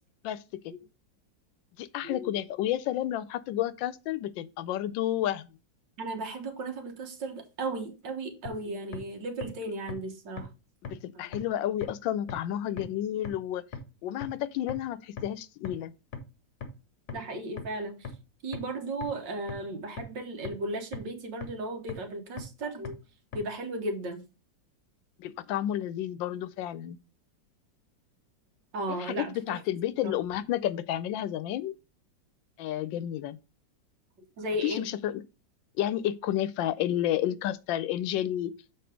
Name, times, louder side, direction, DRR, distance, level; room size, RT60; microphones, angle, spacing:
voice 1, 0.2-0.7 1.8-5.4 10.9-13.7 14.0-15.9 25.2-27.0 28.9-31.7 32.6-33.4 34.6-35.2 35.8-38.5, left 12 dB, 85° left, 1.3 m, -31 dB
voice 2, 2.0-2.4 6.0-10.5 11.2-11.3 17.1-18.1 18.4-23.0 23.3-24.2 28.7-29.6 30.0-30.1 34.4-34.8, right 2 dB, 75° right, 2.1 m, -35 dB
sound 1, 8.4-8.5 8.9-9.0 9.4-9.5 9.9-10.0 10.4-10.5 10.8-10.9 11.3-11.4 11.8-11.9 12.3-12.4 12.8-12.9 13.2-13.3 13.7-13.8 14.2-14.3 14.7-14.8 15.2-15.3 15.6-15.7 16.1-16.2 16.6-16.7 17.1-17.2 17.6-17.7 18.0-18.1 18.5-18.6 19.0-19.1 19.5-19.6 20.0-20.1 20.4-20.5 20.9-21.0 21.4-21.5 21.9-22.0 22.4-22.5 22.8-22.9 23.3-23.4, left 5 dB, 60° left, 1.7 m, -37 dB
6.9 x 4.3 x 4.9 m
omnidirectional pair, 2.0 m